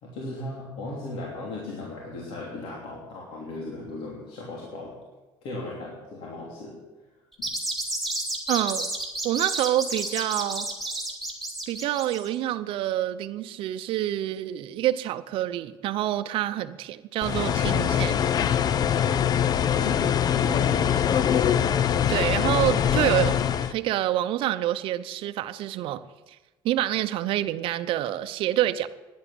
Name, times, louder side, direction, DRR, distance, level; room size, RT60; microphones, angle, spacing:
voice 1, 0.0-4.9 5.4-6.8 7.4-7.5 19.8-21.0, left 2 dB, 70° left, -3 dB, 3.1 m, -37 dB
sound 1, 7.3-12.3, right 2 dB, ahead, 3.2 m, -31 dB
voice 2, 8.5-8.9 9.2-10.7 11.7-18.2 22.1-26.1 26.6-28.9, right 13 dB, 65° right, 10 dB, 0.7 m, -27 dB
sound 2, 17.2-23.7, left 9 dB, 45° left, 0.6 m, -23 dB
11.0 x 10.5 x 8.1 m, 1.2 s
cardioid pair, 120°, 10 cm